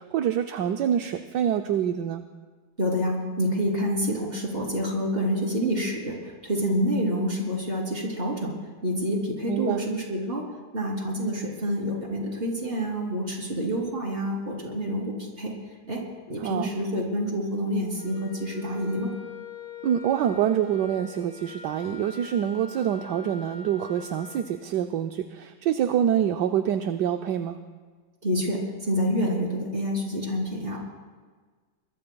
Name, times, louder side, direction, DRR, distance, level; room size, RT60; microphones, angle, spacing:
voice 1, 0.0-2.2 9.5-9.8 16.4-16.7 19.8-27.6, right 9 dB, 70° right, 6 dB, 1.2 m, -26 dB
voice 2, 2.8-8.6 8.8-10.4 10.7-15.5 15.9-16.0 16.3-19.1 28.2-30.8, equal, 30° right, -2 dB, 3.5 m, -27 dB
Wind instrument woodwind instrument, 18.0-24.4, left 5 dB, 70° left, 6.6 m, -43 dB
24.0 x 21.0 x 2.3 m, 1.4 s
omnidirectional pair, 2.1 m